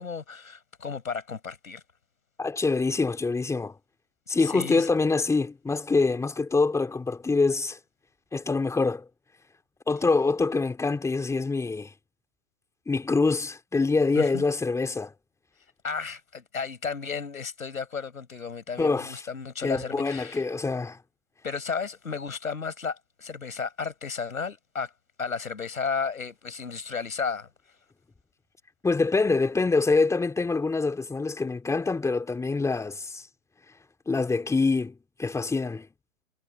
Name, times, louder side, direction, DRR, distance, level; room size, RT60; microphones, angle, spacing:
voice 1, 0.0-1.8 4.4-4.9 14.1-14.5 15.8-20.5 21.4-24.9 25.2-27.5, left 5 dB, 80° left, 6.1 m, -33 dB
voice 2, 2.4-3.7 4.3-7.8 8.3-9.0 9.9-11.9 12.9-15.1 18.8-19.2 19.6-21.0 28.8-33.3 34.1-35.9, left 3 dB, 5° left, 3.2 m, -25 dB
figure-of-eight pair, 120°, 41 cm